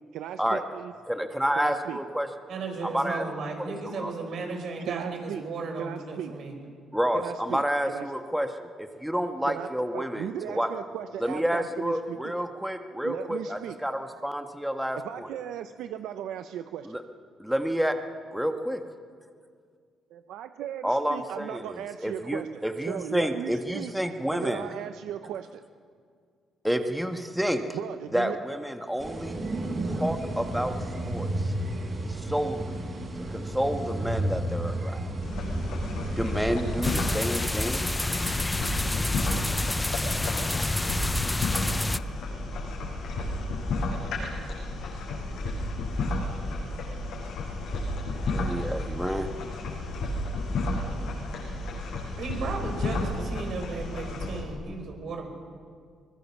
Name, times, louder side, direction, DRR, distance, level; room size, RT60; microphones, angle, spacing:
voice 1, 0.1-0.9 1.6-2.0 4.9-5.4 5.8-6.3 7.1-8.1 9.5-12.4 13.0-13.8 15.0-17.0 20.1-23.9 24.3-25.6 27.7-28.4, right 10 dB, 85° right, 9 dB, 0.7 m, -37 dB
voice 2, 1.1-2.3 2.8-3.2 3.8-4.1 6.9-8.7 9.0-10.7 11.2-15.3 16.8-17.0 17.4-17.9 18.3-18.8 20.8-24.6 26.6-27.6 28.1-29.4 29.8-30.7 31.0-31.5 32.1-32.8 33.3-35.1 36.2-37.8 48.3-49.3, equal, 5° right, 6 dB, 1.5 m, -29 dB
voice 3, 2.5-6.6 52.2-55.3, right 3 dB, 65° right, 3 dB, 5.3 m, -35 dB
sound 1, 29.0-36.9, right 1 dB, 40° right, 6.5 m, -32 dB
sound 2, 35.2-54.4, left 2 dB, 80° left, 7.5 m, -32 dB
sound 3, 36.8-42.0, left 2 dB, 15° left, 0.6 m, -28 dB
24.0 x 21.0 x 7.2 m, 2.1 s
cardioid pair, 90°, 0 cm